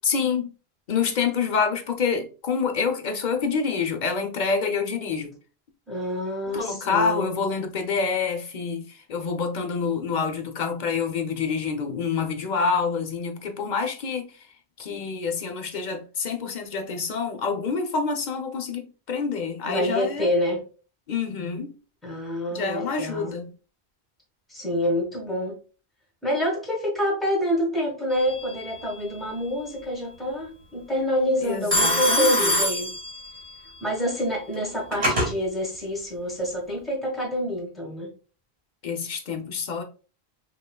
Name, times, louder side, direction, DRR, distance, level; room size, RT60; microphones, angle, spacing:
voice 1, 0.0-0.5 0.9-5.3 6.5-14.3 14.8-20.3 21.1-21.7 22.5-23.5 31.4-32.5 38.8-39.8, left 5 dB, 50° left, 0.7 m, -27 dB
voice 2, 5.9-7.3 19.7-20.6 22.0-23.3 24.5-25.6 26.2-32.9 33.8-38.1, equal, ahead, 1.2 m, -27 dB
Telephone, 28.1-28.6 31.7-33.6 34.5-35.3, equal, 35° right, 1.6 m, -24 dB
5.3 x 2.4 x 2.2 m
omnidirectional pair, 1.1 m